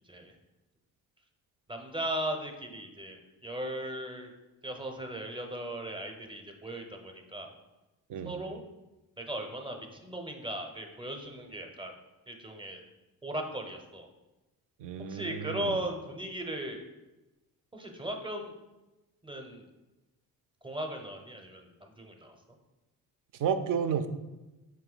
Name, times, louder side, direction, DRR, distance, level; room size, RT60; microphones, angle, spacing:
voice 1, 1.7-4.3 4.6-7.5 8.2-8.6 9.2-11.9 12.3-12.8 13.2-14.1 15.0-16.8 17.7-18.5 19.2-19.7 20.6-22.4, right 1 dB, 15° right, 3 dB, 0.6 m, -37 dB
voice 2, 14.8-15.8 23.4-24.1, right 7 dB, 55° right, 10 dB, 0.5 m, -31 dB
4.5 x 2.7 x 3.9 m, 1.0 s
cardioid pair, 80°, 37 cm